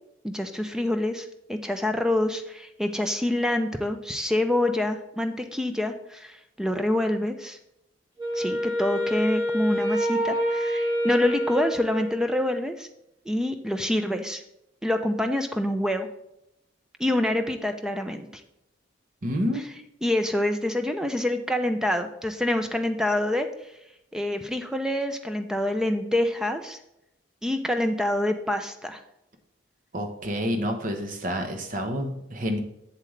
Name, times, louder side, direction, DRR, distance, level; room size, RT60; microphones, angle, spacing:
voice 1, 0.2-7.6 8.3-12.9 13.3-14.4 14.8-16.1 17.0-18.3 19.5-23.5 24.1-26.8 27.4-29.0, left 1 dB, 5° right, 6 dB, 0.4 m, -26 dB
Wind instrument woodwind instrument, 8.2-12.6, equal, 20° right, 1.9 m, -27 dB
voice 2, 19.2-19.6 29.9-32.6, equal, 45° right, 5 dB, 1.0 m, -28 dB
7.6 x 7.5 x 3.2 m, 0.82 s
head